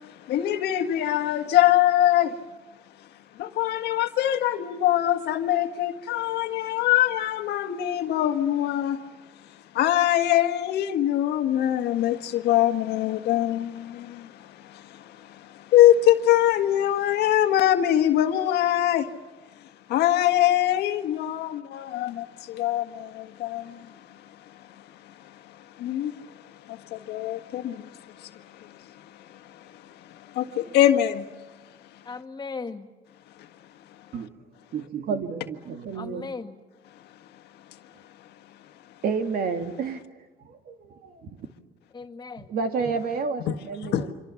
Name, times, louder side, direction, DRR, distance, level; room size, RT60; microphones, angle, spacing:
voice 1, 0.0-2.3 3.4-9.0 9.7-19.1 19.9-24.2 24.5-24.6 25.0-31.3 43.9-44.0, left 12 dB, 75° left, 1.7 m, -24 dB
voice 2, 32.1-32.9 36.0-36.6 41.9-42.5, left 4 dB, 25° left, 1.9 m, -37 dB
voice 3, 34.7-36.2 39.0-41.5 42.5-44.1, right 5 dB, 60° right, 2.4 m, -30 dB
26.5 x 26.0 x 7.1 m
cardioid pair, 110°, 17 cm